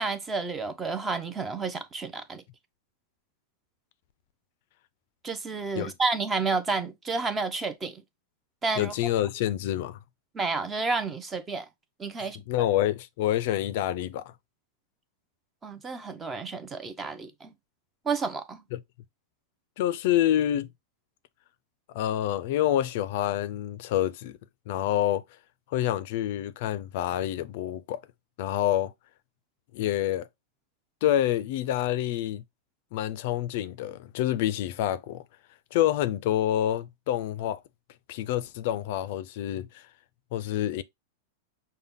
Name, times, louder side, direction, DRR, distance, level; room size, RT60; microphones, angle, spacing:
voice 1, 0.0-2.4 5.2-8.0 8.6-8.9 10.3-11.7 12.0-12.4 15.6-17.5 18.1-18.6, right 4 dB, 15° right, 0.5 m, -30 dB
voice 2, 8.8-10.0 12.2-14.3 18.7-18.8 19.8-20.7 21.9-24.4 24.7-25.2 25.7-28.0 28.4-28.9 29.7-30.3 31.0-32.4 32.9-35.2 35.7-37.6 38.1-39.8 40.3-40.8, left 12 dB, 55° left, 0.4 m, -27 dB
5.6 x 2.1 x 3.5 m
supercardioid pair, 150°, 0 cm